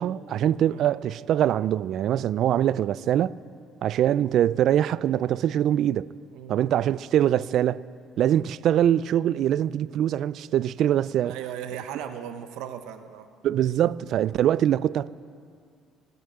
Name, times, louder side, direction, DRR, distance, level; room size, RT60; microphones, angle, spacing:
voice 1, 0.0-3.3 3.8-6.1 6.5-7.8 8.2-11.4 13.4-15.1, right 11 dB, 55° right, 0.3 m, -23 dB
voice 2, 6.3-6.7 11.2-13.3, right 9 dB, 80° right, 0.8 m, -37 dB
18.5 x 9.4 x 8.0 m
cardioid pair, 130°, 0 cm